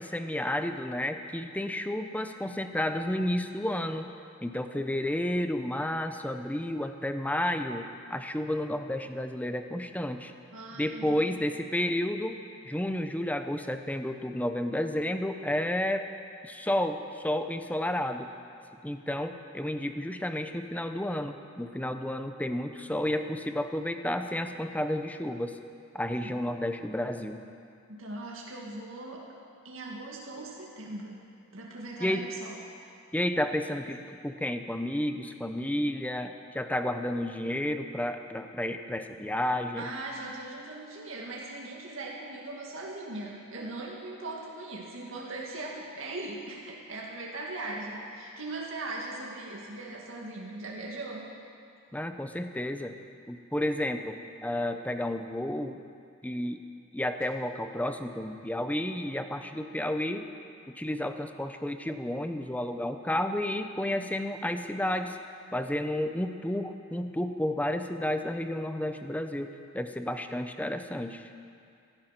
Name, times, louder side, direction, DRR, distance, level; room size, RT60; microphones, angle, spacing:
voice 1, 0.0-4.1 4.4-10.3 10.8-12.4 12.6-16.1 16.4-18.3 18.8-25.6 25.9-27.4 32.0-32.3 33.1-39.9 51.9-53.0 53.3-55.8 56.2-56.6 56.9-60.3 60.7-65.2 65.5-71.2, left 1 dB, 5° left, 7 dB, 0.7 m, -31 dB
voice 2, 10.5-11.4 26.2-26.3 27.9-29.3 29.6-31.2 31.5-32.6 39.8-51.3, right 2 dB, 75° right, -3 dB, 2.1 m, -39 dB
16.0 x 13.5 x 5.9 m, 2.4 s
head